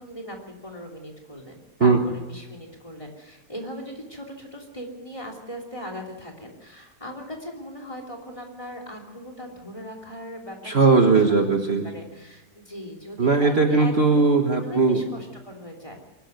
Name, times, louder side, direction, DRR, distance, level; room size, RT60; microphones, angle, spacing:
voice 1, 0.0-11.5 11.8-14.2 14.6-16.0, equal, 20° left, 3 dB, 3.1 m, -39 dB
voice 2, 10.6-11.9 13.2-15.0, right 4 dB, 40° right, 4 dB, 1.5 m, -19 dB
23.0 x 12.5 x 9.3 m, 1.1 s
omnidirectional pair, 1.8 m